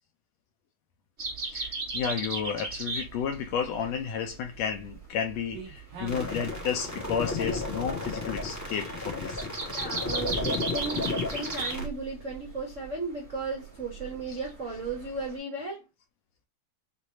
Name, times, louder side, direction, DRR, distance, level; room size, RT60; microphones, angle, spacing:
sound 1, 1.2-15.4, right 3 dB, 25° right, 1.6 m, -37 dB
voice 1, 1.4-9.5, left 7 dB, 75° left, 1.6 m, -32 dB
sound 2, 3.3-3.7 4.3-4.9 5.2-6.4 6.8-7.3 7.9-8.0 8.6-8.7 9.3-9.4 11.6-11.7, right 5 dB, 55° right, 2.4 m, -46 dB
sound 3, 6.1-11.9, left 3 dB, 25° left, 0.3 m, -33 dB
voice 2, 9.7-15.9, right 3 dB, 80° right, 0.6 m, -35 dB
6.4 x 2.7 x 2.7 m
omnidirectional pair, 3.6 m